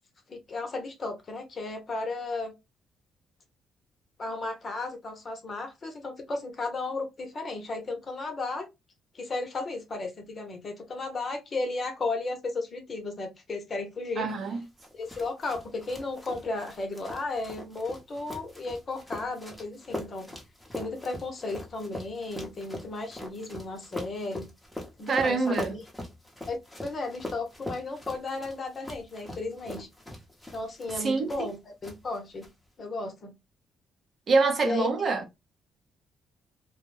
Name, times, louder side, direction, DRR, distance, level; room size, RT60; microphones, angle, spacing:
voice 1, 0.3-2.5 4.2-8.7 9.1-14.3 14.9-20.3 20.7-24.5 25.0-25.8 26.5-29.9 30.5-32.5 32.8-33.3 34.6-34.9, left 3 dB, 40° left, 0.8 m, -34 dB
voice 2, 14.2-14.6 25.1-25.8 31.0-31.5 34.3-35.2, right 4 dB, 50° right, 0.7 m, -25 dB
sound 1, 14.8-31.6 31.8-32.5, left 1 dB, 5° left, 0.9 m, -42 dB
2.2 x 2.1 x 3.1 m
cardioid pair, 90°, 0 cm